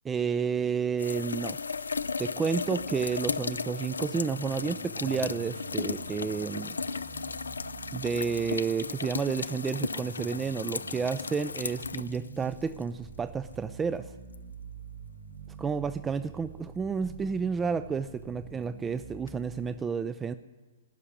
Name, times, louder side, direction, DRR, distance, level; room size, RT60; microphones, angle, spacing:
voice 1, 0.0-1.6 2.2-6.8 7.9-14.1 15.6-20.3, right 6 dB, 15° right, 12 dB, 0.3 m, -31 dB
sound 1, 1.0-12.8 14.3-14.4 19.3-19.4, left 4 dB, 85° left, 0.3 m, -35 dB
sound 2, 2.8-19.7, right 6 dB, 45° right, 1.8 m, -48 dB
15.0 x 5.7 x 9.6 m, 1.3 s
hypercardioid pair, 125°, 0 cm